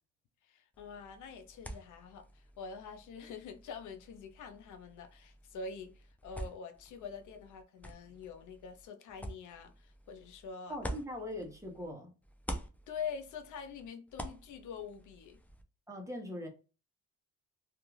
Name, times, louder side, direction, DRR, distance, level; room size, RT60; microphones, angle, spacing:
voice 1, 0.5-10.8 12.9-15.4, left 6 dB, 80° left, 0.6 m, -45 dB
sound 1, 0.7-11.9 12.2-15.6, equal, 5° left, 0.4 m, -48 dB
voice 2, 10.7-12.1 15.9-16.5, left 1 dB, 10° right, 0.8 m, -41 dB
2.4 x 2.3 x 3.1 m
cardioid pair, 90°, 30 cm